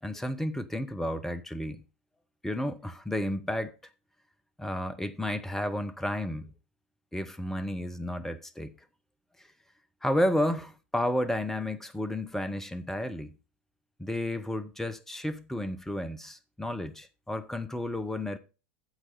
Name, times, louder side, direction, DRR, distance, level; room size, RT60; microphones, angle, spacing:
voice 1, 0.0-1.8 2.4-3.7 4.6-6.5 7.1-8.7 10.0-13.3 14.0-18.4, left 1 dB, 5° left, 0.9 m, -32 dB
9.0 x 7.8 x 4.0 m
figure-of-eight pair, 80°, 6 cm